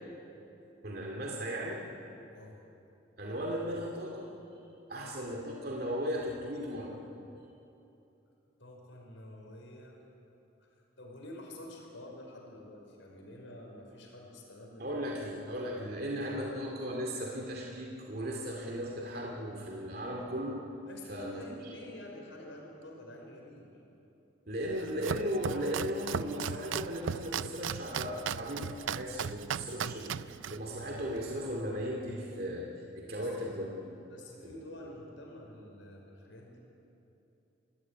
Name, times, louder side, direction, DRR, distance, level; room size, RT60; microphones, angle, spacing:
voice 1, 0.8-1.8 3.2-4.3 4.9-6.9 14.8-20.6 21.1-21.7 24.5-33.8 34.4-34.9, equal, 50° right, -1 dB, 2.4 m, -37 dB
voice 2, 8.6-10.0 11.0-15.0 16.0-16.8 20.9-23.8 33.1-33.3 34.1-36.6, left 1 dB, 75° left, 0 dB, 5.4 m, -48 dB
Domestic sounds home sounds, 24.6-31.6, right 7 dB, 75° right, 0.4 m, -37 dB
25.5 x 16.0 x 9.8 m, 2.9 s
head